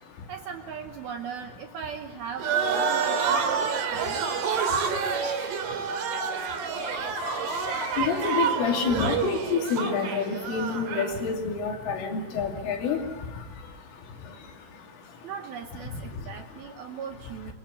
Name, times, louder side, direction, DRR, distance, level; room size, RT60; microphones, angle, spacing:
voice 1, 0.3-3.5 3.9-4.3 15.2-17.5, right 7 dB, 75° right, 5 dB, 2.3 m, -38 dB
sound 1, 2.4-11.2, right 6 dB, 50° right, 3.3 m, -28 dB
voice 2, 3.6-4.0 4.7-15.3 16.1-16.3, left 5 dB, 80° left, 2 dB, 5.3 m, -31 dB
25.5 x 22.5 x 8.3 m, 1.2 s
omnidirectional pair, 5.6 m